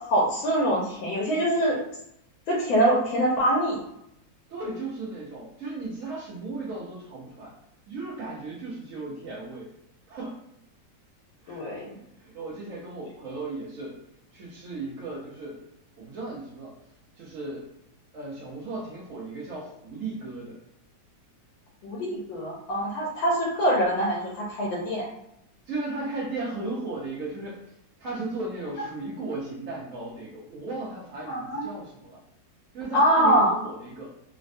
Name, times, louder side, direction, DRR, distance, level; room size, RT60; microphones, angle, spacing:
voice 1, 0.1-1.8 2.5-3.8 11.5-11.9 21.8-25.1 31.3-31.7 32.9-33.5, right 1 dB, 85° left, -3 dB, 1.4 m, -24 dB
voice 2, 4.5-7.5 7.9-9.7 10.1-10.4 11.4-11.7 11.9-14.0 14.3-15.6 16.0-16.7 17.2-17.7 18.1-20.6 25.7-27.6 28.0-32.2 32.7-34.1, right 2 dB, 75° right, -3 dB, 0.7 m, -36 dB
3.2 x 2.1 x 2.5 m, 0.77 s
omnidirectional pair, 2.0 m